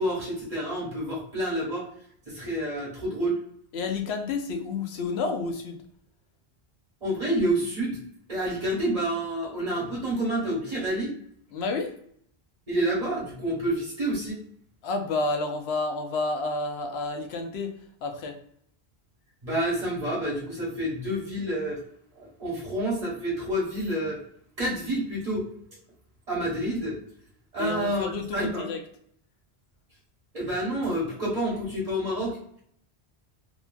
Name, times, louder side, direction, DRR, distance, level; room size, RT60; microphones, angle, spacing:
voice 1, 0.0-1.8 2.3-3.4 7.0-8.0 8.3-11.1 12.7-14.4 19.4-21.8 22.1-24.2 24.6-25.5 26.3-27.0 27.5-28.6 30.3-32.4, right 1 dB, 40° right, -7 dB, 1.2 m, -28 dB
voice 2, 3.7-5.8 11.5-11.9 14.8-17.7 18.0-18.3 27.6-28.8, left 3 dB, 85° left, 5 dB, 0.9 m, -30 dB
2.9 x 2.4 x 2.2 m, 0.66 s
omnidirectional pair, 1.1 m